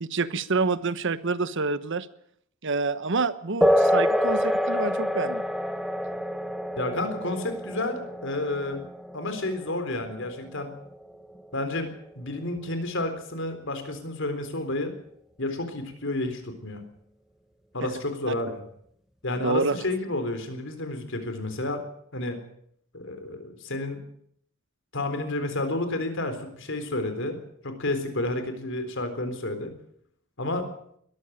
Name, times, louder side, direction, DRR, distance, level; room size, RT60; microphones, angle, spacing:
voice 1, 0.0-2.1 2.6-5.4 18.3-18.4 19.4-19.8, right 4 dB, 60° right, 14 dB, 1.1 m, -27 dB
sound 1, 3.6-11.6, equal, ahead, 0.9 m, -27 dB
voice 2, 6.8-8.8 9.1-10.7 11.5-14.9 15.4-16.8 17.7-18.6 19.2-21.8 22.1-22.4 22.9-24.0 24.9-29.7 30.4-30.7, left 2 dB, 65° left, 8 dB, 3.9 m, -30 dB
21.5 x 14.0 x 8.8 m, 0.69 s
head